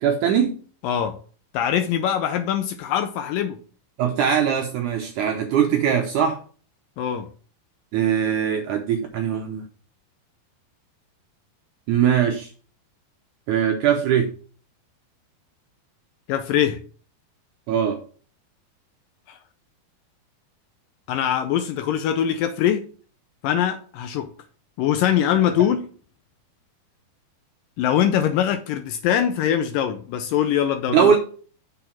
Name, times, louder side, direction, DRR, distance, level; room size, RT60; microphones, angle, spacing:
voice 1, 0.0-0.6 4.0-6.4 7.9-9.6 11.9-12.5 13.5-14.3 17.7-18.0 30.9-31.2, right 8 dB, 75° right, 1.8 m, -21 dB
voice 2, 0.8-1.2 1.5-3.6 7.0-7.3 16.3-16.8 19.3-19.4 21.1-22.9 23.4-24.3 24.8-25.9 27.8-31.1, left 10 dB, 80° left, 2.1 m, -22 dB
6.7 x 4.5 x 5.7 m
omnidirectional pair, 4.4 m